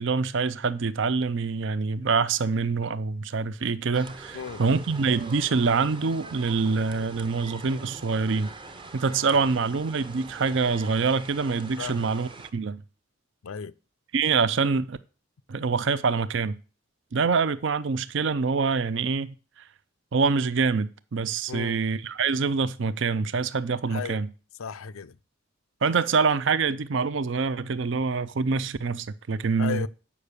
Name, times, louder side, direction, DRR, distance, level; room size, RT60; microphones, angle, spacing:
voice 1, 0.0-8.5 8.9-12.8 14.1-15.0 15.5-16.6 17.1-19.3 20.1-24.3 25.8-29.9, right 4 dB, 60° right, 0.5 m, -25 dB
sound 1, 3.9-12.5, right 2 dB, 25° right, 0.7 m, -43 dB
voice 2, 4.3-4.6 9.3-9.4 11.8-12.1 13.4-13.7 21.5-21.8 23.9-24.2 24.6-25.2 29.6-29.9, left 6 dB, 90° left, 0.5 m, -35 dB
8.3 x 5.6 x 6.7 m
head